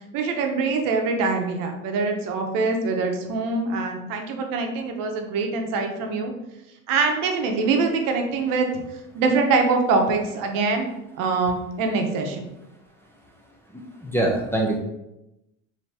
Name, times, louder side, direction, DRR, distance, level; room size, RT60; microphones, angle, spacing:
voice 1, 0.1-6.3 6.9-8.7 9.1-10.9 11.2-12.4, right 4 dB, 65° right, 3 dB, 0.9 m, -24 dB
voice 2, 13.7-14.8, right 1 dB, 5° left, -2 dB, 0.5 m, -24 dB
4.2 x 2.8 x 3.3 m, 0.90 s
cardioid pair, 130°, 35 cm